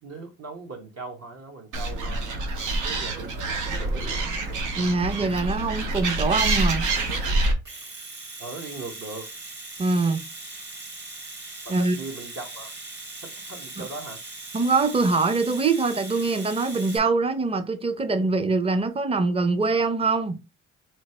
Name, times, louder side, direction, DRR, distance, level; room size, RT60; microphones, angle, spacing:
voice 1, 0.0-2.4 2.8-4.4 8.4-9.3 11.6-12.7 13.2-14.2, right 3 dB, 55° right, 1.3 m, -39 dB
Animal, 1.7-7.5, right 2 dB, 85° right, 1.0 m, -26 dB
voice 2, 4.8-6.9 9.8-10.2 11.7-12.0 13.8-13.9 14.5-20.4, right 3 dB, 20° right, 0.6 m, -23 dB
Domestic sounds home sounds, 7.6-17.0, right 2 dB, 35° right, 1.5 m, -40 dB
3.3 x 3.2 x 4.2 m
cardioid pair, 90°, 30 cm